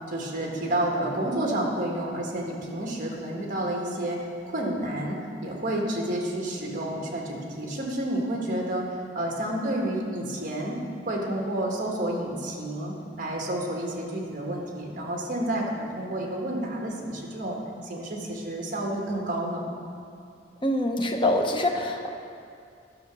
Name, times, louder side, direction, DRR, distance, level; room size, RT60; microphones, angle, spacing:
voice 1, 0.1-8.9 9.2-10.8 11.1-19.6, right 1 dB, 45° right, -1 dB, 1.7 m, -30 dB
voice 2, 20.6-22.1, left 1 dB, 25° left, 2 dB, 0.9 m, -25 dB
12.0 x 6.1 x 6.1 m, 2.4 s
head